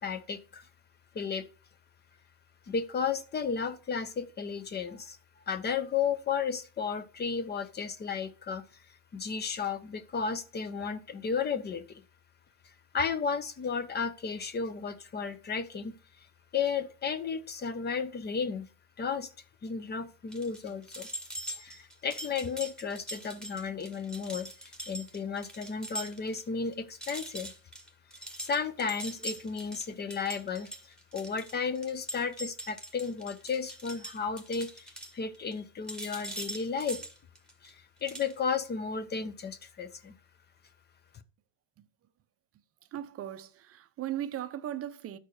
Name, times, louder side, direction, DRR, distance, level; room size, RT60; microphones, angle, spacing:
voice 1, 0.0-0.7 1.1-1.4 2.7-5.2 5.5-8.6 9.1-11.8 12.9-15.9 16.5-18.7 19.0-19.3 19.6-21.1 21.5-24.5 24.9-27.5 28.4-37.0 37.6-40.1, left 6 dB, 25° left, 0.8 m, -33 dB
sound 1, 20.3-26.4 26.7-26.8 27.0-35.6 35.9-37.7 38.0-38.3, right 1 dB, ahead, 1.4 m, -42 dB
voice 2, 42.9-45.2, right 11 dB, 35° right, 0.7 m, -37 dB
12.0 x 4.4 x 4.7 m
supercardioid pair, 125°, 43 cm